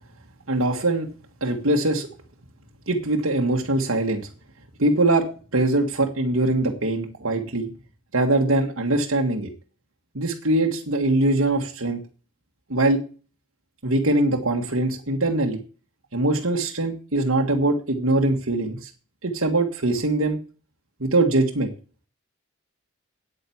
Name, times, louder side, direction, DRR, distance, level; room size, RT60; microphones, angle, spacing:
voice 1, 0.5-1.1 1.4-2.1 2.9-4.3 4.8-5.3 5.5-7.7 8.1-9.5 10.1-12.0 12.7-13.0 13.8-15.6 16.1-18.9 19.2-20.4 21.0-21.7, right 2 dB, 70° right, 1 dB, 1.8 m, -22 dB
9.5 x 9.2 x 7.2 m, 0.37 s
head